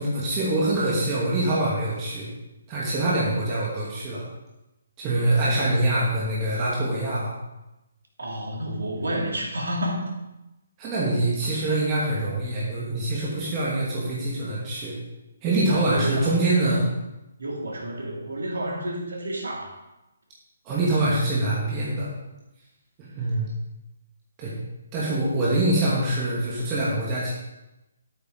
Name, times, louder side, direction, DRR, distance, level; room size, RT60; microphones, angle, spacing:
voice 1, 0.0-2.3 2.7-4.2 5.0-7.3 10.8-14.9 15.4-16.8 20.6-22.1 23.0-23.5 24.4-24.5 24.9-27.3, right 2 dB, 25° right, -6 dB, 2.4 m, -24 dB
voice 2, 8.2-10.0 15.7-16.7 17.4-19.8, right 1 dB, 70° right, -1 dB, 2.9 m, -30 dB
10.5 x 8.8 x 4.0 m, 0.97 s
figure-of-eight pair, 140°, 0 cm